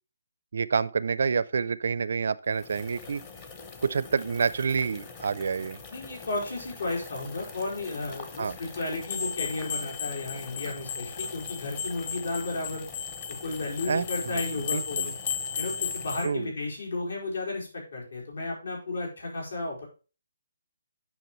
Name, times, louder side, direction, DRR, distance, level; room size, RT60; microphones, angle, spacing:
voice 1, 0.5-3.2 3.8-5.8 8.4-8.6 13.9-15.1 16.2-16.5, right 5 dB, 55° right, 0.4 m, -28 dB
sound 1, 2.5-16.2, left 4 dB, 20° left, 0.8 m, -45 dB
voice 2, 5.9-12.9 13.4-15.1 15.6-19.8, left 2 dB, 80° left, 4.6 m, -33 dB
sound 2, 9.1-16.3, left 7 dB, 40° left, 1.0 m, -35 dB
9.3 x 5.8 x 3.1 m
hypercardioid pair, 175°, 0 cm